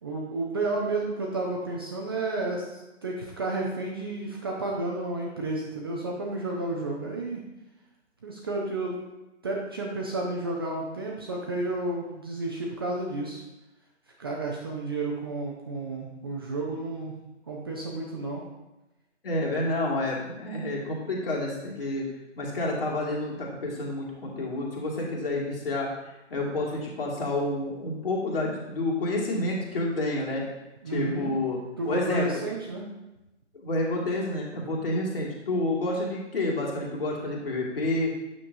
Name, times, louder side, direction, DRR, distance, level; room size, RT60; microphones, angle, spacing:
voice 1, 0.0-7.4 8.2-9.0 9.4-13.4 14.2-17.2 17.5-18.5 30.8-31.3 31.8-32.9, right 2 dB, 20° right, -2 dB, 0.6 m, -31 dB
voice 2, 19.2-22.1 22.4-25.9 26.3-30.4 30.9-31.6 31.8-32.4 33.6-38.1, left 2 dB, 50° left, -3 dB, 2.3 m, -29 dB
8.9 x 6.5 x 2.6 m, 0.97 s
figure-of-eight pair, 140°, 37 cm